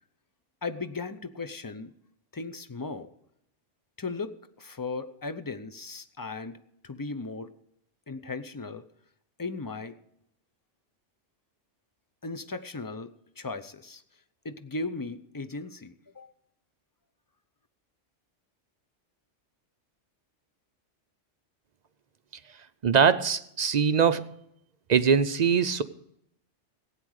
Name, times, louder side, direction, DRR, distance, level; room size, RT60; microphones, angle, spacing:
voice 1, 0.6-1.9 2.3-3.1 4.0-6.6 6.8-7.5 8.1-8.8 9.4-9.9 12.2-14.0 14.4-16.3, left 3 dB, 25° left, 10 dB, 0.5 m, -37 dB
voice 2, 22.8-24.3 24.9-25.8, right 6 dB, 50° right, 12 dB, 0.5 m, -22 dB
16.0 x 9.0 x 6.4 m, 0.75 s
omnidirectional pair, 1.2 m